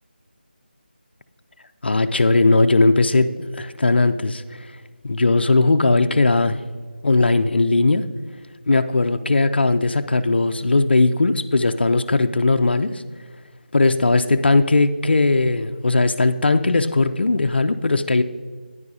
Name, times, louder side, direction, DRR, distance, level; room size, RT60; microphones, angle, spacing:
voice 1, 1.8-4.7 5.0-6.6 7.0-8.0 8.7-13.0 13.7-18.2, left 3 dB, 70° left, 8 dB, 0.5 m, -18 dB
9.6 x 9.5 x 2.7 m, 1.5 s
figure-of-eight pair, 170°, 6 cm